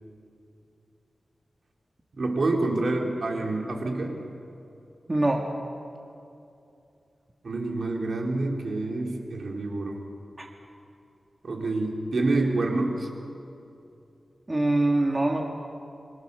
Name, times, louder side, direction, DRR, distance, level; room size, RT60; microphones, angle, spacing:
voice 1, 2.2-4.2 7.4-10.0 11.4-13.1, right 2 dB, 65° right, 0 dB, 3.8 m, -27 dB
voice 2, 5.1-5.4 10.4-10.5 14.5-15.4, right 2 dB, 25° right, 1 dB, 2.2 m, -23 dB
28.0 x 23.5 x 7.0 m, 2.7 s
wide cardioid pair, 105°, 0 cm